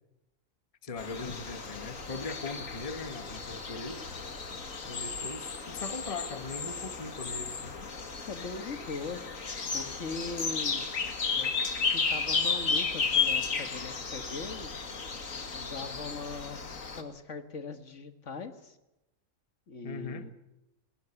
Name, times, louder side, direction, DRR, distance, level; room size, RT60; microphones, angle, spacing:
voice 1, 0.8-4.0 4.4-4.5 4.8-7.8 19.8-20.2, left 3 dB, 25° left, 10 dB, 1.3 m, -40 dB
sound 1, 1.0-17.0, left 5 dB, 80° left, 2.4 m, -33 dB
voice 2, 8.3-9.2 9.7-10.9 11.4-11.6 11.9-14.8 15.5-18.8 19.7-20.3, left 4 dB, 65° left, 9 dB, 1.9 m, -40 dB
19.0 x 19.0 x 9.9 m, 0.91 s
omnidirectional pair, 1.4 m